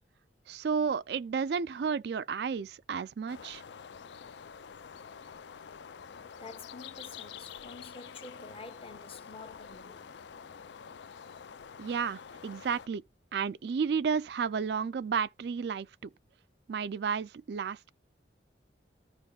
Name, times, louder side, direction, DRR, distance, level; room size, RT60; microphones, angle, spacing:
voice 1, 0.5-3.6 11.8-13.0 13.3-16.1 16.7-17.9, right 6 dB, 60° right, 0.3 m, -32 dB
sound 1, 3.3-12.9, left 7 dB, 70° left, 0.4 m, -47 dB
voice 2, 6.4-10.1, left 3 dB, 30° left, 0.9 m, -48 dB
14.0 x 5.5 x 2.3 m
head